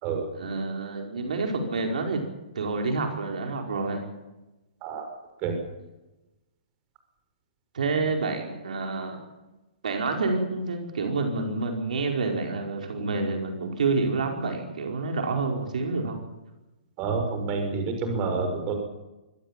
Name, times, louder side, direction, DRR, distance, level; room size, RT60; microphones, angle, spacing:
voice 1, 0.3-2.2 2.5-4.0 7.7-9.2 9.8-16.2, right 3 dB, 75° right, 3 dB, 5.0 m, -28 dB
voice 2, 17.0-18.8, right 4 dB, 30° right, 5 dB, 6.2 m, -28 dB
25.5 x 14.5 x 9.0 m, 1.0 s
hypercardioid pair, 145°, 4 cm